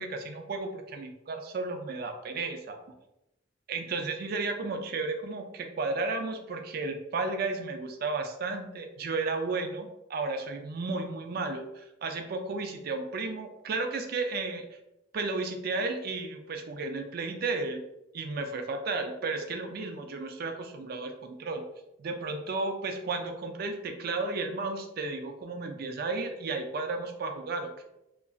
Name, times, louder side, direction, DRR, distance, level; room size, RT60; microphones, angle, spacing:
voice 1, 0.0-2.8 3.7-14.6 15.1-17.8 18.1-21.6 22.0-27.8, right 3 dB, 55° right, 5 dB, 0.4 m, -33 dB
2.9 x 2.5 x 2.3 m, 0.91 s
head